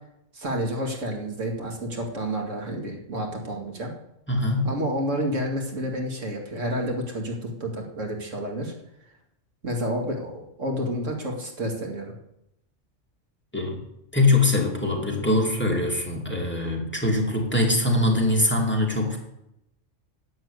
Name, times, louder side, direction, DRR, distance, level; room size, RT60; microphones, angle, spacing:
voice 1, 0.3-3.9 4.6-8.7 9.6-12.1, equal, 80° right, 1 dB, 2.5 m, -30 dB
voice 2, 4.3-4.7 13.5-13.8 14.1-19.2, left 2 dB, 10° left, 0 dB, 2.5 m, -23 dB
10.5 x 9.6 x 8.0 m, 0.82 s
omnidirectional pair, 1.3 m